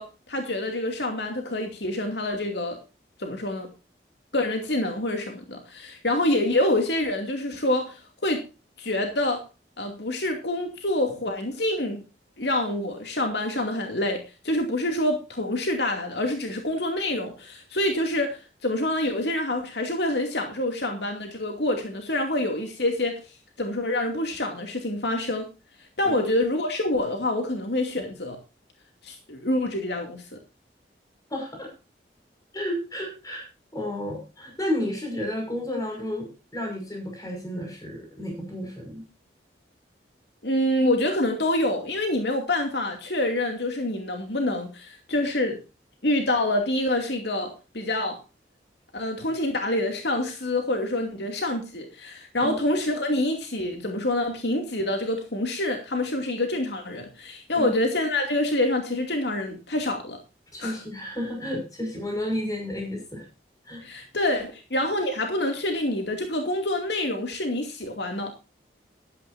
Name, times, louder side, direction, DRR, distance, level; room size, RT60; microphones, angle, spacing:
voice 1, 0.0-2.8 3.2-3.7 4.3-8.4 8.8-9.4 9.8-12.0 12.4-23.2 23.6-25.5 26.0-28.4 29.0-30.2 40.4-45.6 46.0-48.2 48.9-60.2 60.6-60.8 63.8-68.3, left 1 dB, 75° left, 4 dB, 2.6 m, -26 dB
voice 2, 31.3-31.7 32.5-33.4 33.7-39.0 52.4-52.6 57.5-57.7 60.5-63.3 63.7-63.8, left 1 dB, 20° left, 1 dB, 6.0 m, -32 dB
15.0 x 13.0 x 2.7 m, 0.31 s
head